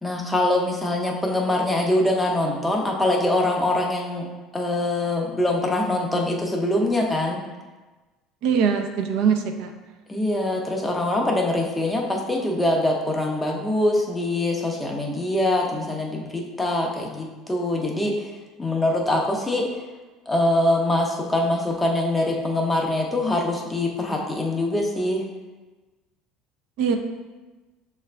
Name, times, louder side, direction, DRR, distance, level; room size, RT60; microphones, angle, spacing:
voice 1, 0.0-4.3 4.5-7.4 10.1-18.3 18.6-19.7 20.3-25.2, left 1 dB, 5° left, 0 dB, 0.5 m, -23 dB
voice 2, 8.4-9.7 26.8-27.0, right 7 dB, 60° right, 5 dB, 0.4 m, -22 dB
6.7 x 2.4 x 3.2 m, 1.2 s
cardioid pair, 165°, 0 cm